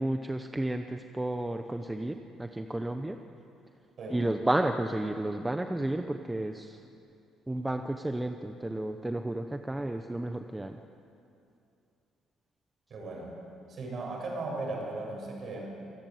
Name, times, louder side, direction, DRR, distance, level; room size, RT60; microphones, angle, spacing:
voice 1, 0.0-3.2 4.1-6.8 7.5-10.8, right 1 dB, 10° right, 6 dB, 0.8 m, -32 dB
voice 2, 12.9-13.3 13.7-15.6, right 2 dB, 40° right, -1 dB, 7.7 m, -37 dB
26.5 x 17.5 x 9.3 m, 2.6 s
cardioid pair, 155°, 0 cm